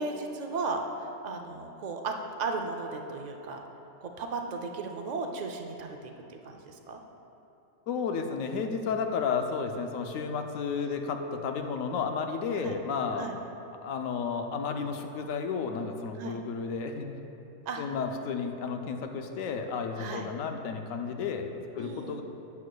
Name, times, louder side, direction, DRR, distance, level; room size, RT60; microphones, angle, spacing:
voice 1, 0.0-3.6 4.0-7.0 12.6-12.8 13.1-13.4 16.2-16.4 17.7-17.8 20.0-20.3 21.8-22.2, right 3 dB, 90° right, 3 dB, 0.3 m, -35 dB
voice 2, 7.9-13.3 13.8-17.1 17.8-22.2, left 5 dB, 85° left, 5 dB, 1.0 m, -32 dB
11.0 x 8.5 x 2.2 m, 2.9 s
omnidirectional pair, 1.4 m